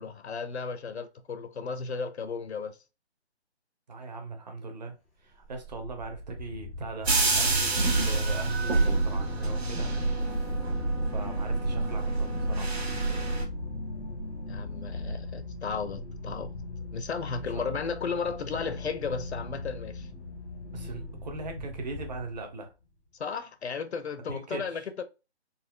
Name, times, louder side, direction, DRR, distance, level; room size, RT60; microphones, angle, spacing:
voice 1, 0.0-2.8 14.5-16.5 16.9-20.1 23.1-25.0, left 5 dB, 70° left, 0.7 m, -34 dB
voice 2, 3.9-4.9 5.2-9.9 11.1-12.7 17.5-17.9 20.7-22.7 24.3-24.9, right 3 dB, 40° right, 0.8 m, -39 dB
sound 1, 5.3-22.7, left 2 dB, 10° left, 0.5 m, -41 dB
sound 2, 7.0-13.4, right 3 dB, 65° right, 1.4 m, -27 dB
sound 3, 9.8-15.2, left 1 dB, 90° left, 1.2 m, -37 dB
4.0 x 2.3 x 2.2 m
figure-of-eight pair, 155°, 34 cm